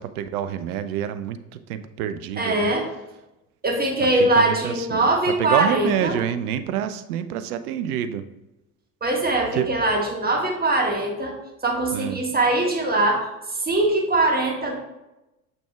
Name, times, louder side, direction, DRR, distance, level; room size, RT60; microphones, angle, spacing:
voice 1, 0.0-2.7 4.0-8.2 9.5-9.7 11.9-12.2, right 10 dB, 70° right, 11 dB, 0.6 m, -27 dB
voice 2, 2.4-2.9 3.6-6.2 9.0-11.3 11.6-14.8, right 2 dB, 20° right, 1 dB, 1.6 m, -22 dB
6.7 x 6.0 x 2.3 m, 0.96 s
figure-of-eight pair, 60°, 47 cm